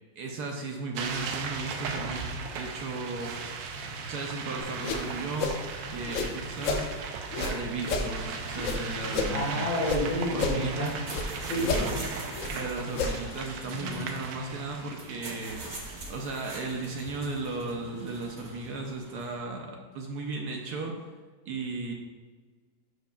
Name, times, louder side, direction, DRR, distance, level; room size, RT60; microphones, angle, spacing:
voice 1, 0.2-2.3 2.5-3.4 4.1-5.5 5.9-6.9 7.3-9.6 10.3-10.9 11.6-12.0 12.5-15.6 16.1-20.9 21.4-21.9, right 3 dB, 65° right, 1 dB, 1.2 m, -35 dB
sound 1, 1.0-16.9, right 5 dB, 90° right, 1.3 m, -37 dB
sound 2, 4.6-6.9 7.3-10.0 10.3-11.3 11.6-13.4, left 4 dB, 70° left, 0.7 m, -32 dB
voice 2, 9.3-10.9 11.4-12.0 13.6-14.0, equal, 55° left, -4 dB, 2.1 m, -30 dB
sound 3, 10.8-19.4, right 2 dB, 35° right, 0.7 m, -44 dB
11.0 x 4.6 x 2.3 m, 1.5 s
omnidirectional pair, 2.0 m